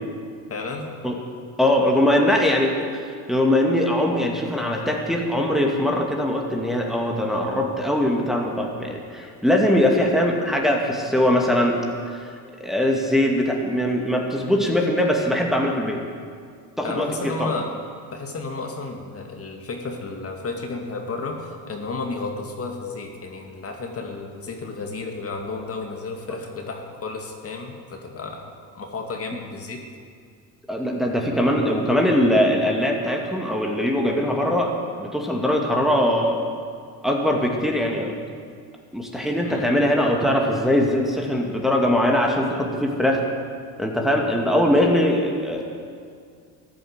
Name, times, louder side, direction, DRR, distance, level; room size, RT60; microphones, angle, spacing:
voice 1, 0.5-0.9 16.8-17.7 18.1-28.4 28.7-29.8 39.4-39.7, left 3 dB, 35° left, 2 dB, 2.2 m, -32 dB
voice 2, 1.6-11.8 12.1-12.2 12.6-16.0 16.8-17.1 17.4-17.5 30.7-34.7 35.0-36.4 37.0-38.1 38.9-43.2 43.8-45.6, left 1 dB, ahead, 0 dB, 2.2 m, -21 dB
14.0 x 11.0 x 8.1 m, 2.2 s
supercardioid pair, 100°, 39 cm